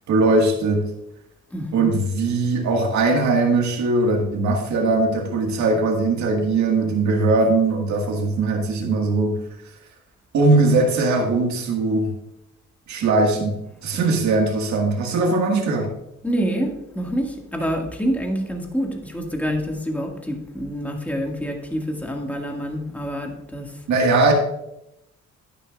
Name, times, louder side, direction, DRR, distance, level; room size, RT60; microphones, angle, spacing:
voice 1, 0.1-0.9 1.7-9.4 10.3-12.1 12.9-15.9 23.9-24.3, right 3 dB, 70° right, 1 dB, 1.8 m, -20 dB
voice 2, 1.5-1.9 16.2-23.7, equal, 5° left, 1 dB, 1.9 m, -27 dB
10.5 x 10.0 x 2.5 m, 0.83 s
cardioid pair, 90°, 30 cm